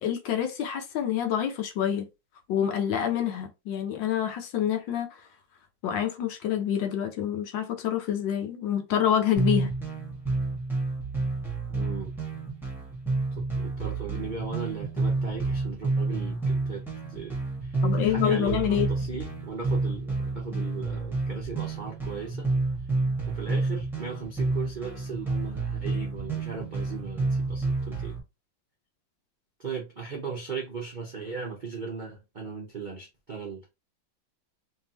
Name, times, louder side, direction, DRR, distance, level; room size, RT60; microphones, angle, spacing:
voice 1, 0.0-2.1 2.5-5.1 5.8-9.7 17.8-18.9, left 9 dB, 70° left, 1.4 m, -27 dB
sound 1, 9.4-28.2, right 3 dB, ahead, 1.3 m, -29 dB
voice 2, 11.7-12.1 13.3-22.5 23.3-28.2 29.6-33.7, right 5 dB, 55° right, 0.5 m, -38 dB
3.6 x 3.4 x 2.8 m
omnidirectional pair, 2.2 m